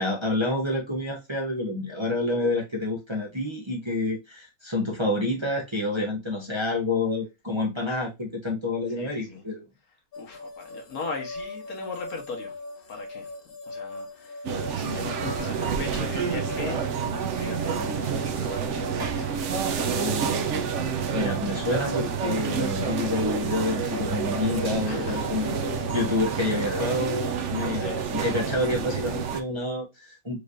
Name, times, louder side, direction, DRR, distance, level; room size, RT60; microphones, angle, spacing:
voice 1, 0.0-9.6 19.9-25.5 25.9-30.4, left 2 dB, 20° right, 1.0 m, -28 dB
voice 2, 9.0-9.4 10.2-12.6 12.9-13.3 13.7-16.8 17.3-20.3 24.9-25.4 27.4-28.0, left 4 dB, 70° left, 1.8 m, -39 dB
sound 1, 10.1-28.7, left 2 dB, 40° left, 1.1 m, -39 dB
sound 2, 14.4-29.4, right 6 dB, 60° right, 0.9 m, -29 dB
5.1 x 3.3 x 2.5 m
omnidirectional pair, 1.6 m